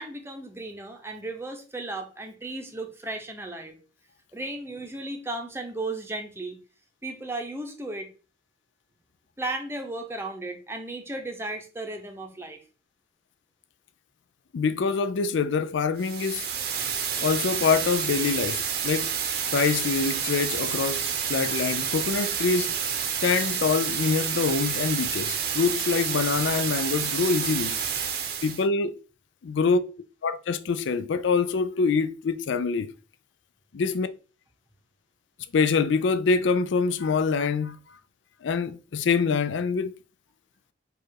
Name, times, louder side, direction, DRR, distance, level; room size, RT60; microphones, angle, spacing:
voice 1, 0.0-3.8 4.3-6.6 7.0-8.1 9.4-12.6, right 2 dB, 15° right, 0.7 m, -35 dB
voice 2, 14.5-16.5 17.2-19.1 19.5-21.0 21.3-22.7 23.2-27.8 28.4-29.0 29.4-29.8 30.2-32.9 33.7-34.1 35.5-37.8 38.4-39.9, left 5 dB, 75° left, 0.4 m, -25 dB
sound 1, 16.0-28.6, right 7 dB, 55° right, 0.7 m, -29 dB
4.7 x 2.4 x 4.6 m
head